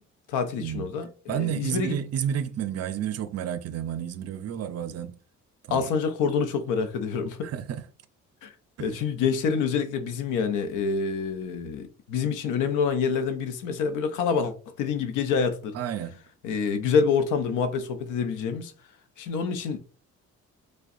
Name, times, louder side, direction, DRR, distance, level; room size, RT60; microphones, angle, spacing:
voice 1, 0.3-2.0 5.7-7.5 8.4-8.5 8.8-15.8 16.4-18.7 19.2-19.8, left 6 dB, 90° left, 0.6 m, -27 dB
voice 2, 1.3-5.2 5.7-5.8 7.4-7.8 8.8-9.0 15.7-16.2, right 9 dB, 55° right, 0.5 m, -31 dB
4.8 x 2.2 x 2.6 m
cardioid pair, 90°, 30 cm